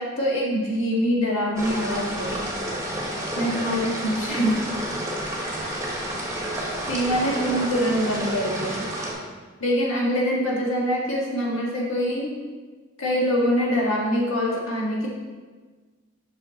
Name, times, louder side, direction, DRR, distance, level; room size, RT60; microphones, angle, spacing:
voice 1, 0.0-2.5 3.4-4.6 6.9-8.9 9.6-12.3 13.0-15.1, equal, 70° left, -3 dB, 1.7 m, -24 dB
sound 1, 1.6-9.1, right 1 dB, 15° right, 1.1 m, -30 dB
5.8 x 5.5 x 4.0 m, 1.4 s
head